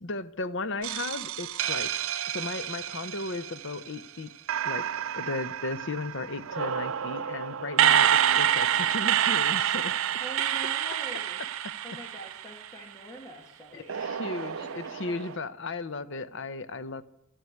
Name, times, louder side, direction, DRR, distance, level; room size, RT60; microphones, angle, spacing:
voice 1, 0.0-1.9 2.3-4.3 4.6-9.9 11.6-11.7 13.7-17.0, left 3 dB, 60° left, 0.8 m, -35 dB
sound 1, 0.8-4.0 4.5-12.9 13.9-15.4, right 10 dB, 65° right, 0.5 m, -28 dB
voice 2, 10.2-11.4 11.8-14.2 14.6-15.2, equal, 15° left, 1.7 m, -45 dB
12.5 x 12.0 x 9.4 m
head